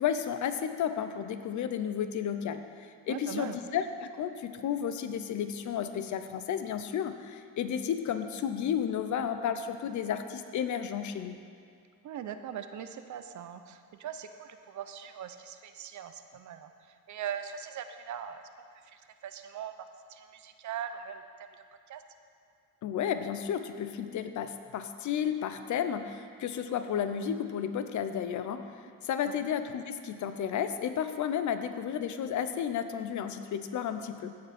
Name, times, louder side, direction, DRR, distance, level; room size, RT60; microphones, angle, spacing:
voice 1, 0.0-11.4 22.8-28.7 29.0-34.3, left 8 dB, 55° left, 9 dB, 0.8 m, -32 dB
voice 2, 3.1-3.6 12.0-18.4 18.8-22.0, right 9 dB, 55° right, 9 dB, 0.7 m, -41 dB
15.5 x 7.7 x 4.3 m, 2.3 s
cardioid pair, 110°, 35 cm